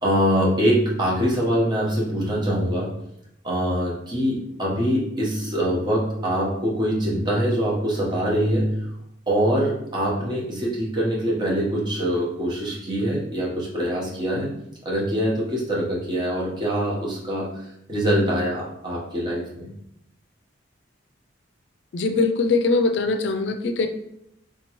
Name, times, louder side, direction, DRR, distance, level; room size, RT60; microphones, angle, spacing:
voice 1, 0.0-2.9 3.4-8.9 9.3-14.5 14.8-17.5 17.9-19.7, equal, 25° right, -5 dB, 0.9 m, -24 dB
voice 2, 21.9-23.9, left 3 dB, 65° left, 8 dB, 0.4 m, -22 dB
3.6 x 2.9 x 3.0 m, 0.77 s
head